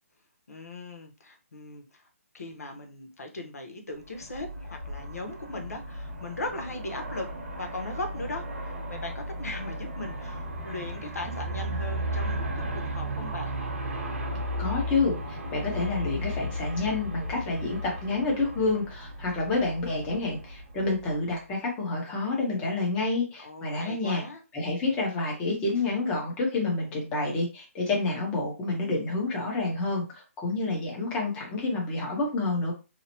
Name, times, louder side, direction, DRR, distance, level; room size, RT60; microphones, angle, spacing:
voice 1, 0.5-2.1 2.3-7.3 7.6-13.6 23.4-24.4, left 2 dB, 85° left, 4 dB, 0.8 m, -38 dB
Aircraft, 4.1-21.3, equal, 60° right, 1.0 m, -35 dB
voice 2, 14.6-24.2 24.5-32.7, left 3 dB, 15° left, -2 dB, 0.7 m, -28 dB
2.8 x 2.0 x 2.8 m, 0.30 s
hypercardioid pair, 160°, 8 cm